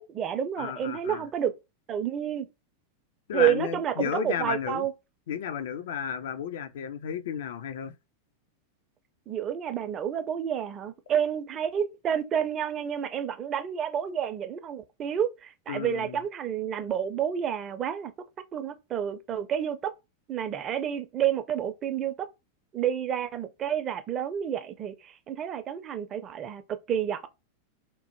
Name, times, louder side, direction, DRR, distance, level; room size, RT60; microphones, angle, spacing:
voice 1, 0.0-1.5 1.9-2.5 3.3-4.9 9.3-18.1 18.5-19.9 20.3-22.3 22.7-27.3, right 9 dB, 30° right, 0.4 m, -29 dB
voice 2, 0.6-1.3 3.3-4.9 5.3-7.9 15.7-16.2, left 8 dB, 60° left, 0.3 m, -33 dB
2.9 x 2.1 x 2.9 m
figure-of-eight pair, 90°, 0 cm